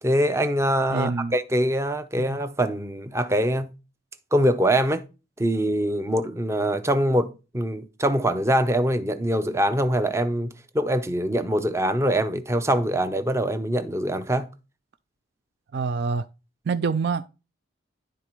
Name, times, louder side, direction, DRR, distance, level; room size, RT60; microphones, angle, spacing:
voice 1, 0.0-3.7 4.3-5.0 5.4-14.5, right 1 dB, 15° right, 0.6 m, -23 dB
voice 2, 0.9-1.3 2.2-2.4 15.7-16.3 16.7-17.3, right 5 dB, 55° right, 0.4 m, -26 dB
11.0 x 4.0 x 4.5 m
head